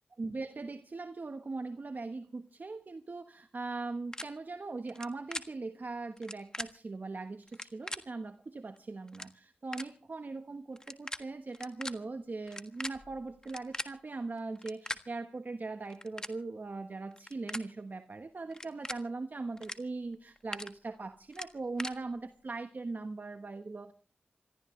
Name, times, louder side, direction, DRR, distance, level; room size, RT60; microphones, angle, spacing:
voice 1, 0.2-23.9, right 3 dB, 55° right, 7 dB, 1.2 m, -40 dB
sound 1, 4.1-4.2 4.9-5.1 5.3-5.4 6.2-6.7 7.5-8.0 8.8-8.9 9.1-9.3 9.7-9.9 10.8-11.2 11.5-11.9 12.5-13.9 14.6-15.0 15.9-16.3 17.1-17.6 18.5-19.0 19.6-19.8 20.1-20.7 21.3-21.9, left 1 dB, 20° left, 1.5 m, -39 dB
27.5 x 14.5 x 3.2 m, 0.39 s
cardioid pair, 45°, 4 cm